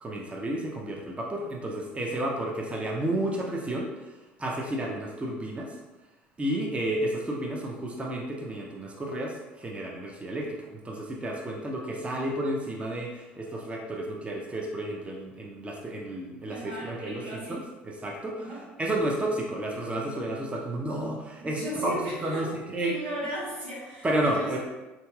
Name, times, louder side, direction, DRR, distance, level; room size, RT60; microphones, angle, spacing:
voice 1, 0.0-5.8 6.4-18.5 18.8-21.9 22.2-22.9 24.0-24.6, right 1 dB, 20° right, -1 dB, 0.6 m, -31 dB
voice 2, 16.5-17.7 18.4-18.7 21.4-22.5 22.8-24.6, equal, 90° right, -7 dB, 1.4 m, -36 dB
3.8 x 2.8 x 2.3 m, 1.1 s
hypercardioid pair, 75°, 6 cm